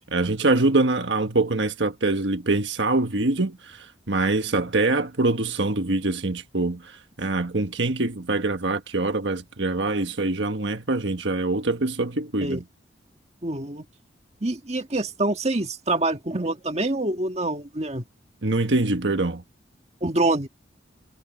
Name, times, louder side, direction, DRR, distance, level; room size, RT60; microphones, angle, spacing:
voice 1, 0.1-12.6 18.4-19.4, right 2 dB, 75° right, 1.5 m, -24 dB
voice 2, 13.4-13.8 14.4-18.0 20.0-20.5, right 2 dB, 35° right, 1.7 m, -26 dB
head